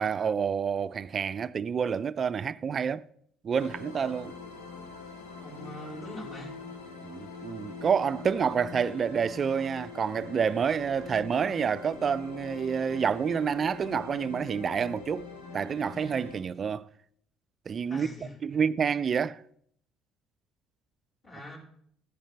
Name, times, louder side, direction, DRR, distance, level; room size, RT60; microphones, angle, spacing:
voice 1, 0.0-3.1 3.4-4.3 7.0-15.3 15.5-16.9 17.7-18.1 18.4-19.4, right 6 dB, 40° right, 0.4 m, -28 dB
sound 1, 3.5-16.4, left 5 dB, 80° left, 1.4 m, -43 dB
voice 2, 5.4-6.6 17.9-18.4 21.2-21.6, equal, 40° left, 4.5 m, -42 dB
13.0 x 10.0 x 3.3 m
hypercardioid pair, 55°, 0 cm